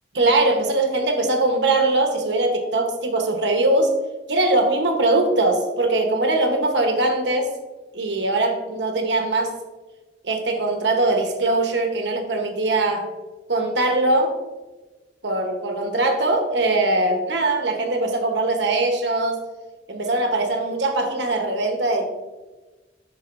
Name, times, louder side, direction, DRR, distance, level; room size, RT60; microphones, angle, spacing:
voice 1, 0.1-3.9 4.3-7.5 7.9-9.5 10.2-13.1 13.5-14.3 15.2-19.4 19.9-22.1, right 2 dB, 80° right, 4 dB, 1.1 m, -21 dB
10.5 x 4.0 x 2.6 m, 1.2 s
head